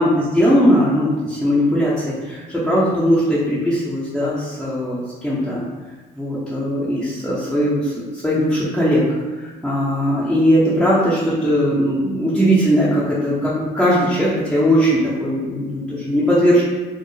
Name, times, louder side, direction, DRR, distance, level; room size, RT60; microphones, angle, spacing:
voice 1, 0.0-5.6 6.1-9.0 9.3-16.6, equal, ahead, -9 dB, 0.7 m, -19 dB
4.4 x 2.0 x 3.2 m, 1.3 s
cardioid pair, 110°, 17 cm